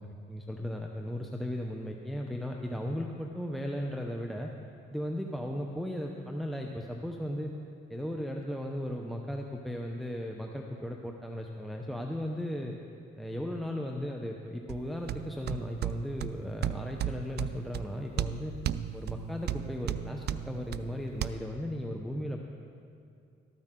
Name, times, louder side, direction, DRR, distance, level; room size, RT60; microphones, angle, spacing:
voice 1, 0.0-4.5 4.9-7.5 7.9-12.7 13.2-18.5 18.9-22.4, left 1 dB, ahead, 1 dB, 0.8 m, -36 dB
sound 1, 14.7-21.3, right 11 dB, 55° right, 0.4 m, -36 dB
13.5 x 13.0 x 3.8 m, 2.5 s
cardioid pair, 90°, 20 cm